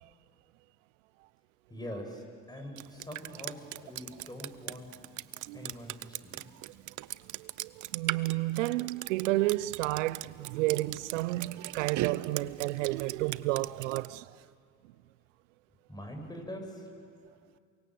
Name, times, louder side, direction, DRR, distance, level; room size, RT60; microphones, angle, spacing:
voice 1, 1.7-4.9 5.5-6.5 15.9-16.9, left 1 dB, 10° left, 6.9 m, -43 dB
Drip, 2.8-14.1, right 15 dB, 55° right, 0.7 m, -39 dB
voice 2, 7.4-14.4, right 18 dB, 85° right, 0.6 m, -31 dB
28.5 x 24.0 x 7.8 m
hypercardioid pair, 60°, 37 cm